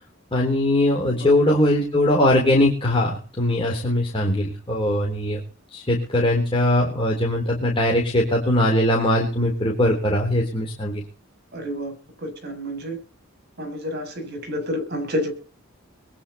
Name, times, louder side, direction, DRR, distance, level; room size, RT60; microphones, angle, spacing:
voice 1, 0.3-5.4 5.7-11.0, left 1 dB, 25° left, -2 dB, 3.8 m, -21 dB
voice 2, 11.5-13.0 13.6-15.3, equal, 50° right, 6 dB, 7.8 m, -29 dB
22.0 x 10.0 x 4.3 m, 0.40 s
head